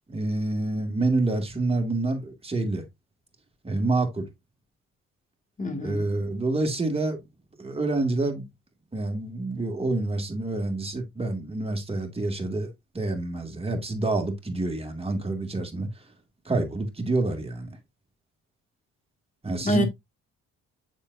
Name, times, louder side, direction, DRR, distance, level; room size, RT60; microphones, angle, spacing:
voice 1, 0.1-2.8 3.6-4.3 5.8-7.2 7.6-8.4 8.9-12.7 12.9-15.9 16.5-17.7 19.4-19.9, right 2 dB, 20° right, 2.5 m, -27 dB
voice 2, 5.6-6.1 19.6-19.9, equal, 25° left, 2.3 m, -26 dB
7.2 x 6.5 x 2.7 m
cardioid pair, 90°, 30 cm